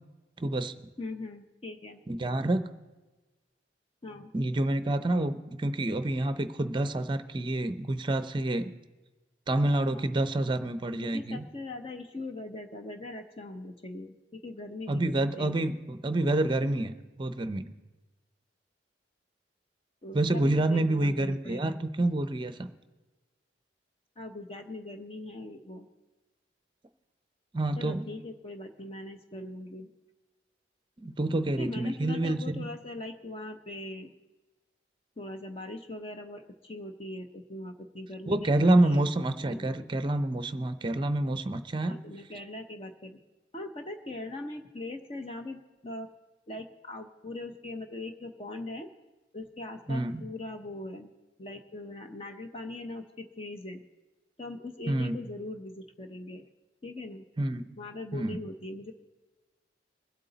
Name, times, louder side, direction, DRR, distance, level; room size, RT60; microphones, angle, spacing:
voice 1, 0.4-0.7 2.1-2.7 4.3-8.7 9.5-11.4 14.9-16.9 17.2-17.6 20.1-22.7 27.5-28.0 31.0-32.6 38.3-42.0 49.9-50.2 54.9-55.2 57.4-57.6 58.1-58.4, right 1 dB, 25° right, 11 dB, 0.6 m, -28 dB
voice 2, 1.0-2.0 4.0-4.3 9.9-10.1 11.0-15.7 20.0-21.9 24.2-25.9 27.8-29.9 31.5-34.1 35.2-39.1 39.4-39.9 41.8-43.2 43.5-46.1 46.5-48.9 49.3-51.1 51.4-53.8 54.4-56.4 56.8-57.2 57.8-58.9, left 2 dB, 30° left, 5 dB, 0.8 m, -41 dB
23.0 x 8.1 x 4.0 m, 1.2 s
head